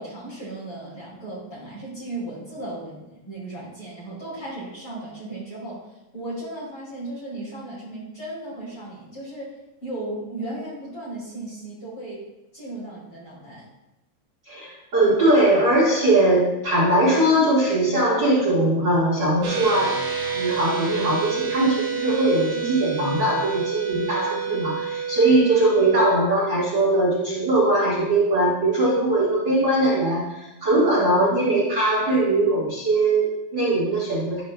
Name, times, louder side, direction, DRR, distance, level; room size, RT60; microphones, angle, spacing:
voice 1, 0.0-9.5 9.8-12.2 12.5-13.6, right 1 dB, 35° left, -7 dB, 2.5 m, -36 dB
voice 2, 14.5-19.9 20.2-34.4, right 1 dB, 50° right, -8 dB, 1.4 m, -20 dB
sound 1, 19.4-26.1, right 6 dB, 70° right, 1.4 m, -29 dB
12.0 x 6.0 x 2.3 m, 0.94 s
omnidirectional pair, 5.0 m